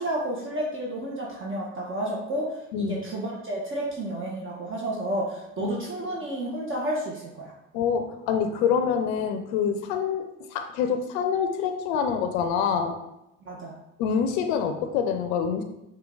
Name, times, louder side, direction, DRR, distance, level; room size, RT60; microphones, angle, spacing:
voice 1, 0.0-7.5 13.4-13.7, right 1 dB, 35° right, -4 dB, 1.3 m, -31 dB
voice 2, 7.7-10.2 10.5-13.0 14.0-15.6, left 7 dB, 80° left, 7 dB, 0.5 m, -26 dB
5.1 x 2.7 x 3.7 m, 0.89 s
hypercardioid pair, 60°, 34 cm